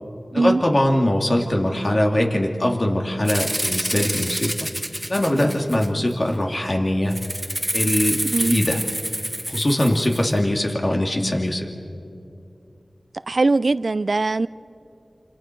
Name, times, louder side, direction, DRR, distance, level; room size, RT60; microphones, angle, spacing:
voice 1, 0.3-4.5 5.1-7.2 7.7-8.8 9.5-11.7, left 1 dB, 50° left, 1 dB, 2.6 m, -21 dB
Rattle (instrument), 3.3-6.1 7.1-10.3, equal, 10° right, 1.3 m, -27 dB
voice 2, 8.2-8.6 13.3-14.5, right 3 dB, 70° right, 17 dB, 0.4 m, -21 dB
28.0 x 27.0 x 4.6 m, 2.6 s
wide cardioid pair, 40°, 0 cm